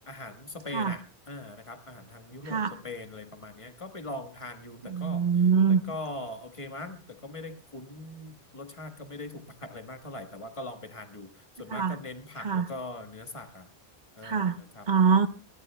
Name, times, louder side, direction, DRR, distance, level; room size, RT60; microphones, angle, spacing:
voice 1, 0.1-5.3 5.7-13.7 14.1-14.9, left 2 dB, 30° left, 7 dB, 1.5 m, -41 dB
voice 2, 4.9-5.8 11.7-12.0 12.4-12.7 14.2-14.6 14.9-15.3, right 6 dB, 45° right, 11 dB, 0.9 m, -24 dB
23.5 x 18.5 x 2.2 m, 0.33 s
omnidirectional pair, 1.1 m